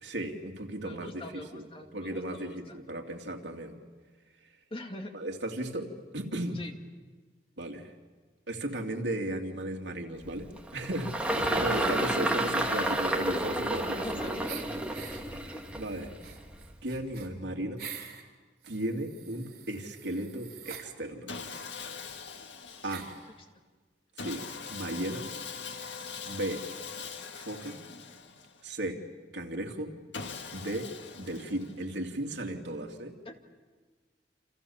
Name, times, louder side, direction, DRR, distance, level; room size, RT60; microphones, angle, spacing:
voice 1, 0.0-1.6 1.9-3.7 5.1-6.6 7.6-7.9 8.5-14.0 14.2-14.4 15.8-16.1 16.8-17.8 18.6-21.3 22.8-23.1 24.2-24.4 24.7-25.3 26.2-26.6 27.4-27.8 28.6-29.0 29.3-30.0 30.5-30.9 31.2-33.2, right 1 dB, 80° right, 2 dB, 2.9 m, -35 dB
voice 2, 0.8-2.8 4.7-5.1 6.5-6.7 11.3-12.3 12.6-14.8 15.2-15.6 22.8-23.0 33.2-33.4, left 1 dB, 30° left, 4 dB, 2.2 m, -43 dB
Engine, 10.2-16.8, right 1 dB, 5° right, 2.1 m, -31 dB
sound 1, 11.2-12.1 12.5-14.1 14.5-15.2 15.7-18.2 18.6-20.9 21.8-21.9 22.1-22.2 22.9-23.3, right 7 dB, 60° right, 3.8 m, -46 dB
Sawing, 21.3-23.3 24.2-28.7 30.1-32.0, left 5 dB, 85° left, 1.9 m, -42 dB
29.0 x 28.0 x 7.3 m, 1.4 s
head